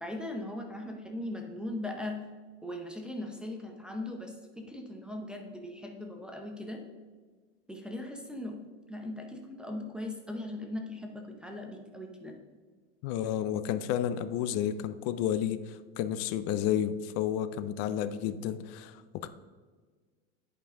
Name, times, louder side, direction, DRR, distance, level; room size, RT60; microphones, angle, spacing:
voice 1, 0.0-2.2 2.6-6.8 7.7-8.6 8.9-12.3, left 1 dB, 5° right, 1 dB, 0.7 m, -39 dB
voice 2, 13.0-19.3, left 10 dB, 50° left, 13 dB, 0.5 m, -31 dB
10.0 x 5.4 x 3.7 m, 1.4 s
supercardioid pair, 145°, 32 cm